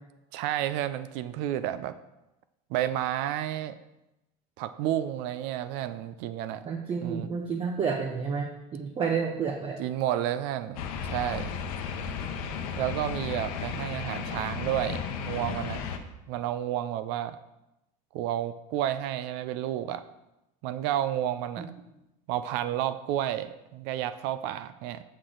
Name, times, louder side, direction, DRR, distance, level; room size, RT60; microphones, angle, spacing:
voice 1, 0.3-1.9 2.7-3.8 4.6-6.7 7.0-7.3 9.8-11.5 12.8-15.8 16.3-17.4 18.1-20.0 20.6-21.7 22.3-25.0, right 12 dB, 65° right, 12 dB, 0.4 m, -31 dB
voice 2, 6.6-9.8 21.6-21.7, right 6 dB, 30° right, 1 dB, 0.8 m, -30 dB
sound 1, 10.8-16.0, left 6 dB, 85° left, 0.8 m, -34 dB
6.5 x 6.0 x 3.8 m, 0.94 s
supercardioid pair, 125°, 19 cm